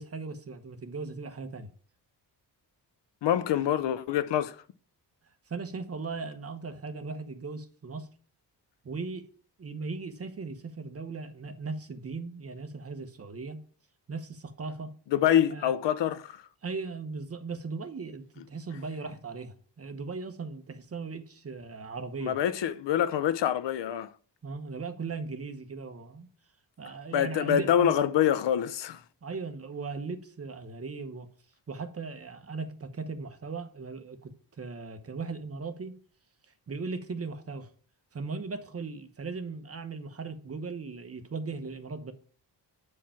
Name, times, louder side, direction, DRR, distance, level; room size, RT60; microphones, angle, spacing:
voice 1, 0.0-1.7 3.5-3.6 5.5-8.1 8.8-9.3 9.6-13.6 14.1-14.9 15.5-15.7 16.6-22.4 24.4-26.3 26.8-27.9 29.2-31.3 31.7-36.0 36.7-37.7 38.1-42.1, right 4 dB, 35° right, 1.1 m, -38 dB
voice 2, 3.2-4.6 15.1-16.4 22.2-24.1 27.1-29.0, left 10 dB, 80° left, 0.7 m, -26 dB
8.9 x 4.8 x 5.8 m
wide cardioid pair, 140°, 43 cm